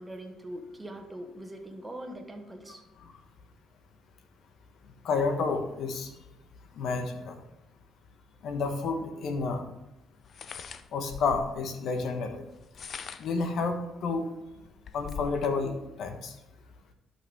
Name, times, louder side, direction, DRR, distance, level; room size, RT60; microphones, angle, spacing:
voice 1, 0.0-2.8, right 1 dB, 15° right, 3 dB, 1.4 m, -42 dB
voice 2, 5.0-6.1 6.7-7.3 8.4-9.7 10.9-12.4 13.2-14.3 14.9-16.3, left 4 dB, 65° left, 6 dB, 1.3 m, -30 dB
sound 1, 9.0-9.1 10.2-11.6 12.6-13.4 14.0-14.1 14.5-15.6, left 6 dB, 50° left, 0.5 m, -42 dB
12.0 x 5.7 x 3.6 m, 0.95 s
cardioid pair, 105°, 0 cm